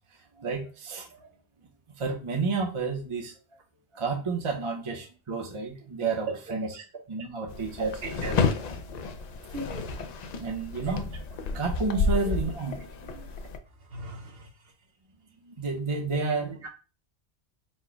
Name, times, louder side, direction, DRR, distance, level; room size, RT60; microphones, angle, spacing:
voice 1, 0.4-1.3 2.0-3.3 3.9-7.9 10.3-11.0 11.5-13.2 15.5-16.7, right 4 dB, 30° right, 0 dB, 0.7 m, -31 dB
sound 1, 7.5-13.6, left 4 dB, 60° left, 0.4 m, -31 dB
voice 2, 7.8-8.5 9.5-9.8 10.9-11.0 13.9-14.5 16.6-16.7, right 2 dB, 60° right, 2 dB, 1.1 m, -35 dB
4.4 x 2.1 x 4.5 m, 0.34 s
omnidirectional pair, 1.2 m